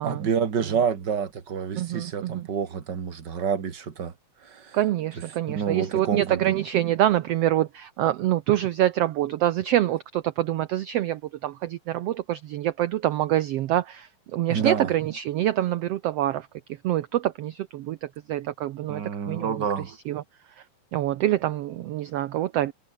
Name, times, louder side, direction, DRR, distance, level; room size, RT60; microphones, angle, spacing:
voice 1, 0.0-4.1 4.4-4.8 5.5-6.4 14.5-14.9 18.9-19.9, right 7 dB, 40° right, 2.0 m, -28 dB
voice 2, 1.7-2.5 4.7-16.5 16.8-20.2 20.5-20.6 20.9-22.7, right 13 dB, 80° right, 1.4 m, -26 dB
omnidirectional pair, 3.8 m